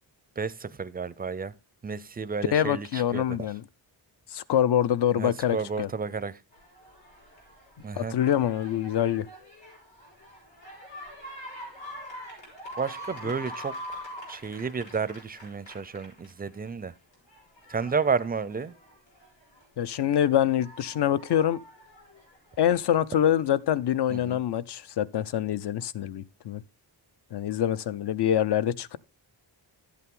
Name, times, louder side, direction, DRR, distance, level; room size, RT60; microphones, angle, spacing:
voice 1, 0.4-1.5 1.8-3.4 5.1-6.4 7.8-8.1 12.8-14.0 14.3-16.9 17.7-18.7 24.1-24.4, right 5 dB, 20° right, 0.4 m, -31 dB
voice 2, 2.5-3.6 4.3-5.9 8.0-9.3 19.8-21.6 22.6-26.6 27.3-29.0, left 10 dB, 65° left, 0.6 m, -25 dB
sound 1, 6.5-16.7 17.1-19.6 20.2-23.0 23.8-23.9, equal, 85° left, 5.8 m, -44 dB
11.0 x 8.4 x 3.6 m
wide cardioid pair, 165°, 44 cm